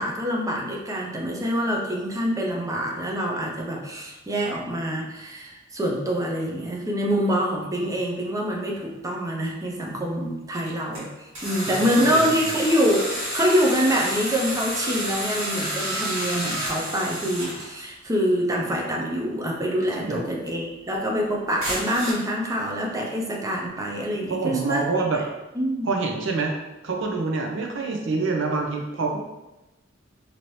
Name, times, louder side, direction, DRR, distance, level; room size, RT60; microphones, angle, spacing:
voice 1, 0.0-24.9 25.5-25.9, equal, 15° right, -1 dB, 0.5 m, -25 dB
sound 1, 8.7-8.8 9.4-9.5 10.5-11.0 11.3-17.7 19.8-20.0 20.5-20.6 21.6-22.1, equal, 80° right, 1.4 m, -30 dB
voice 2, 11.7-12.2 20.0-20.3 24.3-25.2 25.8-26.5 26.8-29.2, right 3 dB, 65° right, 1 dB, 0.6 m, -26 dB
2.9 x 2.7 x 3.1 m, 1.0 s
head